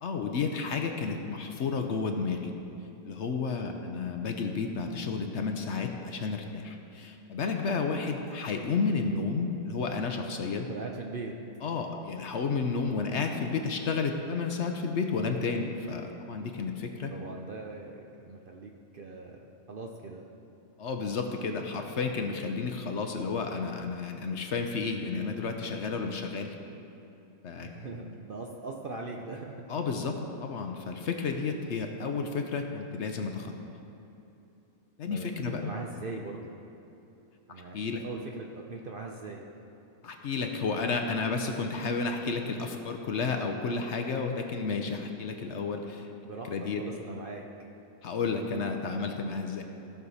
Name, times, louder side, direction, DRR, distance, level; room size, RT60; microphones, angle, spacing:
voice 1, 0.0-2.5 3.0-10.7 11.6-17.1 20.8-26.5 27.4-27.7 29.7-33.5 35.0-35.6 37.5-38.0 40.0-46.1 46.5-46.8 48.0-49.6, left 4 dB, 60° left, 4 dB, 0.9 m, -31 dB
voice 2, 10.6-11.4 17.1-20.2 27.6-29.6 35.1-36.5 37.5-39.4 46.2-47.4, right 3 dB, 50° right, 0 dB, 0.6 m, -41 dB
16.0 x 6.4 x 4.1 m, 2.9 s
omnidirectional pair, 1.5 m